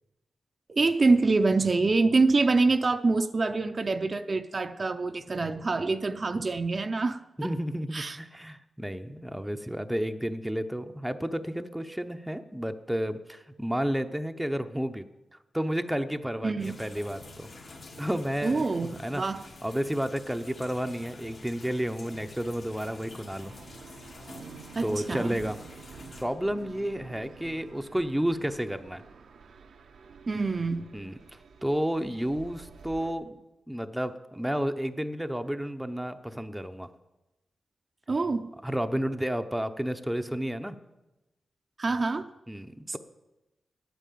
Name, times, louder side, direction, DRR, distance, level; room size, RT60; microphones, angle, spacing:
voice 1, 0.7-7.2 7.9-8.2 16.4-16.8 18.4-19.4 24.7-25.4 30.3-30.9 38.1-38.5 41.8-42.3, right 3 dB, 40° right, 8 dB, 0.6 m, -25 dB
voice 2, 7.4-15.0 15.5-17.7 18.0-18.6 19.0-19.2 19.6-23.5 24.8-25.6 26.2-29.0 30.9-31.1 31.6-33.4 33.7-36.9 38.6-40.8 42.5-43.0, equal, 5° right, 8 dB, 0.7 m, -31 dB
sound 1, 16.6-26.2, left 2 dB, 60° left, 2.3 m, -48 dB
sound 2, 23.4-33.1, right 5 dB, 85° right, 0.9 m, -49 dB
9.7 x 9.3 x 8.4 m, 1.0 s
cardioid pair, 80°, 0 cm